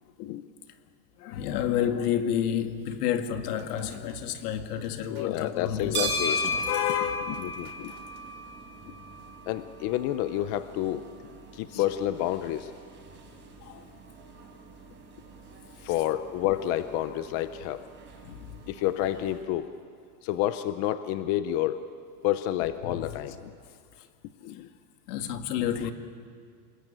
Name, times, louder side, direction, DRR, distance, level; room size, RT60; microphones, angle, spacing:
voice 1, 1.2-7.5 11.7-11.8 13.6-13.9 15.8-15.9 18.2-18.6 22.8-23.2 25.1-25.9, left 9 dB, 65° left, 2.2 m, -30 dB
sound 1, 3.3-8.2, right 10 dB, 60° right, 3.4 m, -49 dB
voice 2, 5.1-6.4 7.4-7.9 8.9-9.0 9.5-11.0 11.5-12.7 15.8-17.8 18.7-19.7 20.2-21.8 22.2-23.5 24.4-24.7, left 13 dB, 30° left, 0.6 m, -29 dB
sound 2, 5.6-19.4, left 1 dB, 20° right, 5.2 m, -38 dB
27.0 x 21.0 x 8.8 m
supercardioid pair, 155°, 49 cm